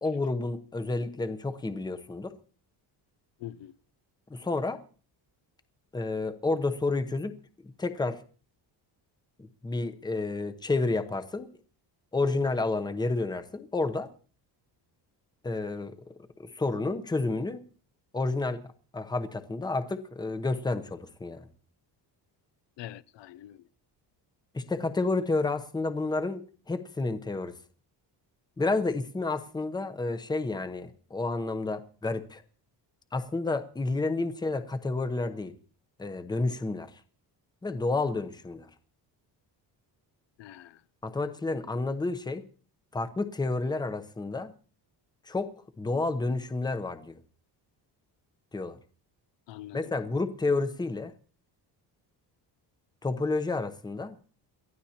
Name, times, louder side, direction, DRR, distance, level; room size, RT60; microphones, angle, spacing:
voice 1, 0.0-2.3 4.3-4.8 5.9-7.4 7.6-8.2 9.4-11.5 12.1-14.1 15.4-17.6 18.1-18.6 18.9-21.5 24.5-27.5 28.6-32.4 33.1-35.5 36.0-37.0 37.6-38.7 41.0-42.4 42.9-44.5 45.3-45.5 45.8-47.2 48.5-48.8 49.7-51.1 53.0-54.2, left 3 dB, 10° left, 0.8 m, -30 dB
voice 2, 3.4-3.8 22.8-23.7 40.4-40.8 49.5-49.9, left 13 dB, 85° left, 0.6 m, -44 dB
28.5 x 13.5 x 2.9 m
cardioid pair, 175°, 42 cm